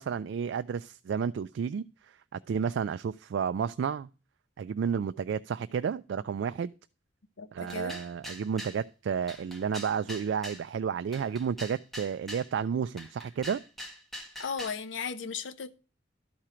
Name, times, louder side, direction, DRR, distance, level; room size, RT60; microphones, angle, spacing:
voice 1, 0.0-4.1 4.6-6.7 7.5-13.6, right 7 dB, 70° right, 0.3 m, -31 dB
voice 2, 7.4-8.0 14.4-15.7, left 6 dB, 80° left, 0.7 m, -36 dB
sound 1, 7.7-8.8 9.3-10.6 11.1-12.5 13.0-14.8, equal, ahead, 1.4 m, -43 dB
12.0 x 4.4 x 4.9 m
head